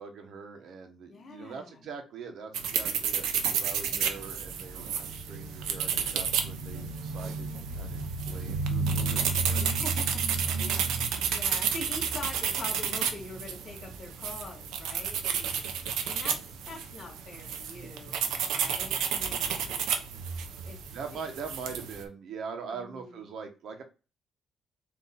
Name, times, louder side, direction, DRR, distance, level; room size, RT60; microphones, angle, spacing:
voice 1, 0.0-7.5 7.8-9.6 20.9-23.8, right 5 dB, 70° right, 6 dB, 1.0 m, -42 dB
voice 2, 1.1-1.9 3.9-4.5 7.2-7.7 9.5-15.6 16.0-20.0 20.6-21.2 22.7-23.2, left 3 dB, 55° left, -4 dB, 2.0 m, -45 dB
sound 1, 2.5-22.0, right 6 dB, 90° right, 0.7 m, -31 dB
4.2 x 2.8 x 3.9 m, 0.32 s
cardioid pair, 90°, 0 cm